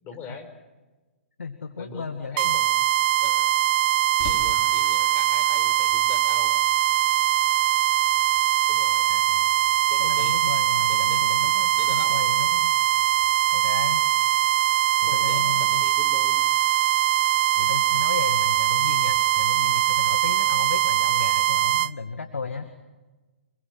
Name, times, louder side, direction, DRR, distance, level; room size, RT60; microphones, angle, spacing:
voice 1, 0.0-0.5 1.8-2.9 3.2-3.6 4.3-6.6 8.7-9.1 9.9-10.4 10.9-11.2 11.8-12.2 15.1-16.4, left 5 dB, 25° left, 7 dB, 5.0 m, -42 dB
voice 2, 1.4-2.6 9.1-9.5 10.0-12.8 13.5-14.0 15.0-15.8 17.6-22.7, left 5 dB, 85° left, 8 dB, 2.1 m, -34 dB
sound 1, 2.4-21.9, right 12 dB, 50° right, 0.7 m, -22 dB
sound 2, 4.2-21.2, left 4 dB, 45° left, 4.7 m, -48 dB
27.5 x 21.0 x 7.8 m, 1.2 s
hypercardioid pair, 130°, 7 cm